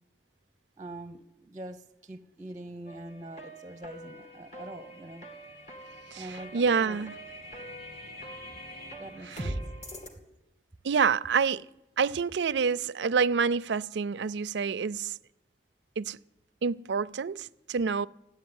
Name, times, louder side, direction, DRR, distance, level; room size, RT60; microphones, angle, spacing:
voice 1, 0.8-5.3 6.1-7.1 9.0-9.6, right 1 dB, 20° right, 0.6 m, -44 dB
sound 1, 2.9-10.1, equal, 40° left, 2.4 m, -42 dB
voice 2, 6.1-7.1 9.3-9.5 10.8-11.7 12.0-15.2 16.0-16.2 16.6-18.1, right 5 dB, 85° right, 0.4 m, -27 dB
15.0 x 10.5 x 9.5 m
head